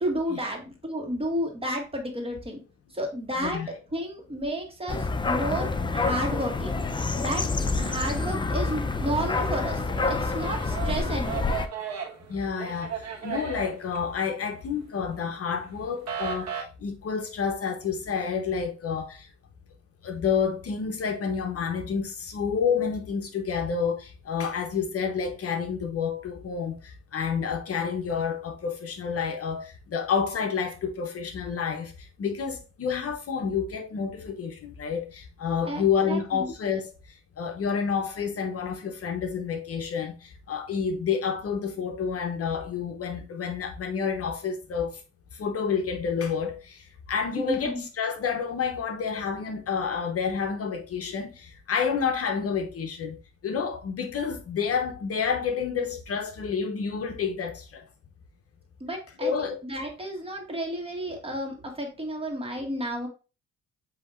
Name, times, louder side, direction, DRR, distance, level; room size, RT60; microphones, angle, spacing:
voice 1, 0.0-2.6 2.9-3.6 3.9-6.7 7.2-7.4 7.8-9.8 10.1-11.5 35.7-36.5 47.4-47.8 58.8-59.3 59.6-63.1, right 1 dB, 20° right, 1.6 m, -31 dB
voice 2, 3.4-3.7 7.8-7.9 12.3-19.3 20.0-45.0 45.3-53.2 53.4-57.9 59.2-59.6, left 6 dB, 50° left, 0.8 m, -29 dB
sound 1, 4.9-11.7, left 3 dB, 15° left, 0.4 m, -28 dB
sound 2, 7.8-8.9 9.3-14.7 15.0-16.6, right 7 dB, 60° right, 1.3 m, -36 dB
7.8 x 2.8 x 2.4 m
cardioid pair, 90°, 30 cm